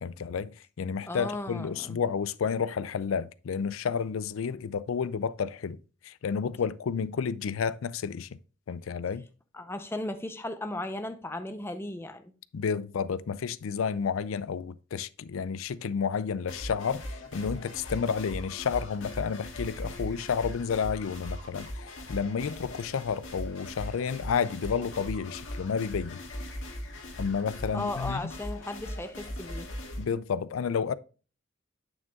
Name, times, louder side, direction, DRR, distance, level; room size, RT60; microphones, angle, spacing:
voice 1, 0.0-8.3 8.7-9.3 12.5-26.2 27.2-28.2 30.0-30.9, left 6 dB, 80° left, 0.4 m, -31 dB
voice 2, 1.1-2.0 9.5-12.3 27.7-29.7, left 2 dB, 10° left, 0.6 m, -36 dB
sound 1, 16.5-30.0, left 1 dB, 65° left, 2.0 m, -39 dB
8.5 x 7.3 x 2.3 m
head